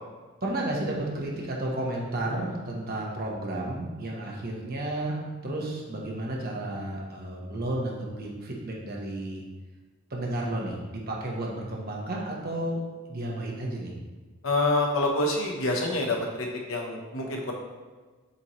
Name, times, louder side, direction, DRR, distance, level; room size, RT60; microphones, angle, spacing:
voice 1, 0.4-9.4 10.1-12.8 13.1-13.9, right 1 dB, 50° right, -2 dB, 1.1 m, -32 dB
voice 2, 14.4-17.5, left 2 dB, 75° left, 0 dB, 1.0 m, -27 dB
7.0 x 4.3 x 3.1 m, 1.3 s
head